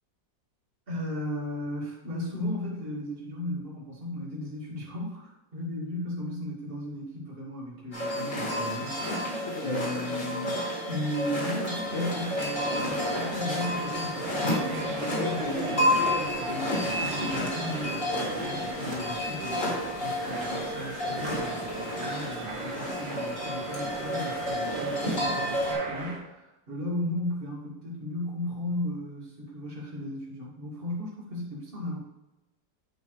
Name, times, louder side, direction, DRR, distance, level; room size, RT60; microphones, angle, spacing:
voice 1, 0.9-10.6 10.9-19.7 20.0-32.0, left 1 dB, 30° right, -7 dB, 2.3 m, -36 dB
sound 1, 7.9-25.7, left 1 dB, 45° left, 2.3 m, -30 dB
sound 2, 11.5-26.2, right 3 dB, 65° right, 1.7 m, -39 dB
9.4 x 5.2 x 3.2 m, 0.96 s
omnidirectional pair, 2.0 m